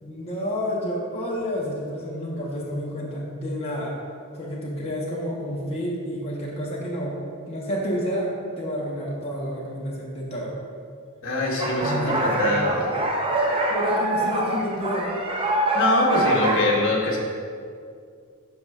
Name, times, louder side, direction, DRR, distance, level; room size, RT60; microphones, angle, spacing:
voice 1, 0.0-3.9 4.4-10.6 11.8-12.1 12.6-13.0 13.7-15.1, equal, 30° left, -5 dB, 1.0 m, -30 dB
voice 2, 11.2-12.8 15.5-17.2, left 2 dB, 60° left, -3 dB, 1.4 m, -24 dB
sound 1, 11.6-16.6, right 1 dB, 25° right, 0.7 m, -24 dB
11.0 x 5.4 x 2.4 m, 2.2 s
head